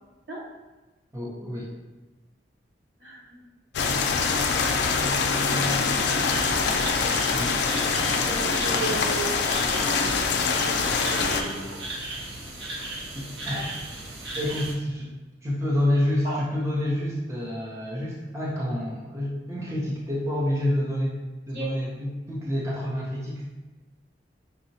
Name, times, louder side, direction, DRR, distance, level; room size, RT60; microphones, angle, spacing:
voice 1, 1.1-1.7 7.3-7.6 13.1-13.7 14.4-15.1 15.4-21.2 21.5-23.4, left 1 dB, 15° right, -6 dB, 0.5 m, -28 dB
voice 2, 3.0-3.4 3.8-4.1 5.4-6.1 8.1-9.5 10.6-11.6 13.5-13.6 16.2-16.4 21.5-21.7, right 3 dB, 80° right, -7 dB, 1.5 m, -36 dB
sound 1, 3.7-11.4, left 4 dB, 65° left, 0.3 m, -24 dB
sound 2, 6.2-14.7, right 1 dB, 65° right, 0.6 m, -35 dB
5.3 x 2.0 x 2.7 m, 1.1 s
head